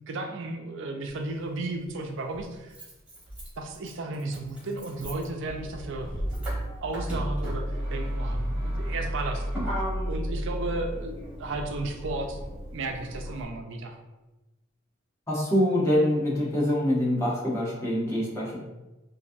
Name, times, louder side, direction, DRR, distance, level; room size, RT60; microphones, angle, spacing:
voice 1, 0.1-2.7 3.6-6.1 6.8-12.4 12.7-14.0, right 2 dB, 65° right, 4 dB, 0.5 m, -34 dB
Motor vehicle (road), 1.1-1.2 2.3-13.5, equal, 5° right, 1.2 m, -33 dB
voice 2, 15.3-18.6, left 1 dB, 15° left, -6 dB, 0.9 m, -25 dB
3.9 x 2.6 x 2.5 m, 1.1 s
head